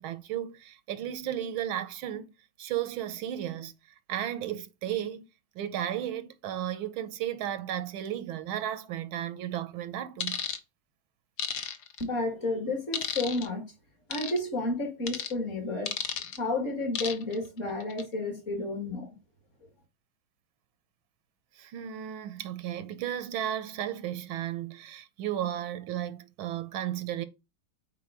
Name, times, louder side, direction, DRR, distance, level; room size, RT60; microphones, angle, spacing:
voice 1, 0.0-2.3 2.6-3.7 4.1-5.3 5.5-10.4 21.6-27.2, right 11 dB, 85° right, 1.6 m, -34 dB
sound 1, 10.2-10.6 11.4-12.0 12.9-13.5 14.1-14.4 15.1-15.3 15.9-16.4 16.9-17.3 17.8-18.0, left 8 dB, 60° left, 1.4 m, -33 dB
voice 2, 12.0-13.7 14.1-16.0 16.4-19.1, left 2 dB, 40° left, 1.9 m, -31 dB
8.6 x 4.5 x 4.7 m
omnidirectional pair, 2.2 m